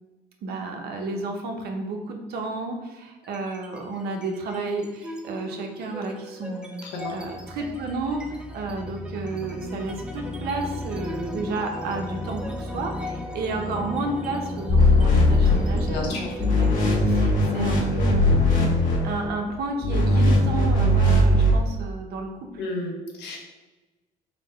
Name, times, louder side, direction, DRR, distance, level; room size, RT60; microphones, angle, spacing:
voice 1, 0.4-6.7 7.1-18.5 19.0-22.6, right 3 dB, 70° right, 3 dB, 0.8 m, -32 dB
sound 1, 3.2-3.8 4.1-20.7, left 1 dB, 5° right, 0.4 m, -36 dB
voice 2, 6.8-7.1 15.9-16.3 22.6-23.4, left 2 dB, 90° left, 1 dB, 1.0 m, -32 dB
sound 2, 14.7-16.1 16.4-19.3 19.8-21.5, left 1 dB, 55° left, 1.2 m, -19 dB
4.0 x 2.1 x 4.5 m, 1.2 s
cardioid pair, 110°, 17 cm